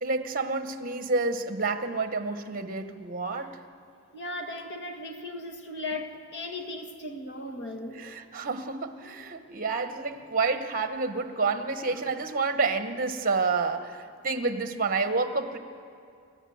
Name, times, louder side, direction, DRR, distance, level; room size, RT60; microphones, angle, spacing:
voice 1, 0.0-3.6 8.0-15.6, right 4 dB, 45° right, 1.2 m, -29 dB
voice 2, 4.1-8.1 11.9-12.0 15.0-15.1, left 2 dB, 60° left, 1.7 m, -37 dB
28.5 x 12.0 x 8.0 m
head